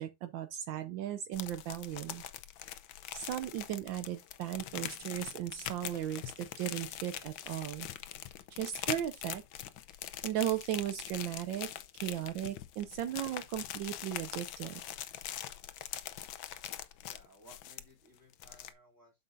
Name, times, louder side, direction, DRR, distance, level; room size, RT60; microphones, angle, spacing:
voice 1, 0.0-2.2 3.1-7.9 8.5-9.4 10.2-11.7 11.9-14.8, right 11 dB, 75° right, 1.4 m, -36 dB
sound 1, 1.3-18.1 18.3-18.7, left 12 dB, 80° left, 1.5 m, -43 dB
voice 2, 16.9-19.1, right 1 dB, 10° right, 2.8 m, -60 dB
8.2 x 6.8 x 2.6 m
omnidirectional pair, 2.1 m